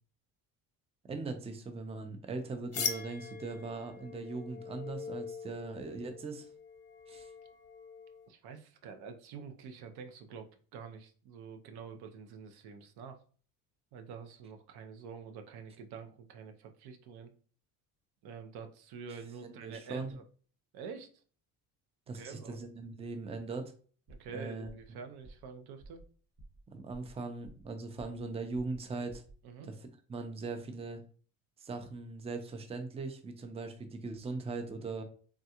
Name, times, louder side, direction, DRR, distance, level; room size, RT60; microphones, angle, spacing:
voice 1, 1.1-6.5 7.1-7.3 19.4-20.2 22.1-23.7 24.3-24.7 26.7-29.2 30.1-31.0 31.6-35.0, right 3 dB, 15° right, 7 dB, 0.5 m, -40 dB
sound 1, 2.7-8.3, left 6 dB, 40° left, 0.7 m, -42 dB
voice 2, 8.3-13.2 13.9-17.3 18.2-20.3 20.7-21.1 22.1-22.6 24.1-26.0 29.4-29.7, right 6 dB, 75° right, 7 dB, 0.6 m, -47 dB
sound 2, 24.1-24.4 24.6-24.9 25.2-25.5 25.8-26.1 26.4-26.6 26.9-27.7 28.0-28.3 28.5-28.8 29.1-29.4, right 2 dB, 60° right, 1.5 m, -53 dB
3.5 x 2.3 x 2.8 m, 0.42 s
supercardioid pair, 85°, 39 cm